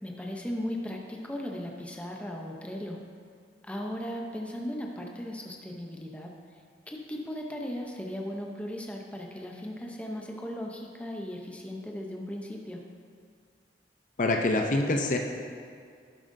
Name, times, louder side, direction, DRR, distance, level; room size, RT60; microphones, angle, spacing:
voice 1, 0.0-3.0 3.6-6.3 6.9-12.8, left 1 dB, 10° left, 0 dB, 0.6 m, -37 dB
voice 2, 14.2-15.2, left 2 dB, 45° left, 3 dB, 0.5 m, -25 dB
11.5 x 7.4 x 2.6 m, 2.2 s
head